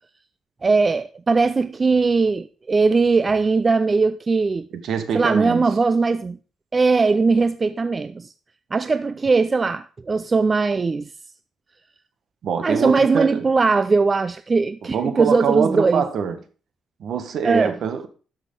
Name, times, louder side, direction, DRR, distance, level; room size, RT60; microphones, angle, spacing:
voice 1, 0.6-4.7 5.1-6.4 6.7-8.3 8.7-11.1 12.6-16.1 17.4-17.7, right 4 dB, 30° right, 0.4 m, -19 dB
voice 2, 4.7-5.7 12.4-13.4 14.9-16.4 17.0-18.1, right 6 dB, 65° right, 1.4 m, -24 dB
12.5 x 6.5 x 3.9 m
cardioid pair, 90°, 0 cm